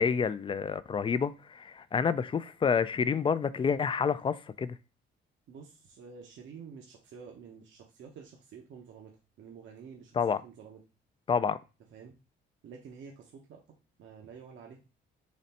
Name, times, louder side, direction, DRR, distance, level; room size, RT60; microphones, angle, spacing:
voice 1, 0.0-4.8 10.1-10.4 11.3-11.6, left 6 dB, 25° left, 0.3 m, -28 dB
voice 2, 5.5-9.1 9.4-10.8 11.9-12.2 12.6-13.6 14.0-14.8, right 6 dB, 70° right, 0.9 m, -49 dB
4.0 x 3.2 x 4.1 m
cardioid pair, 90°, 20 cm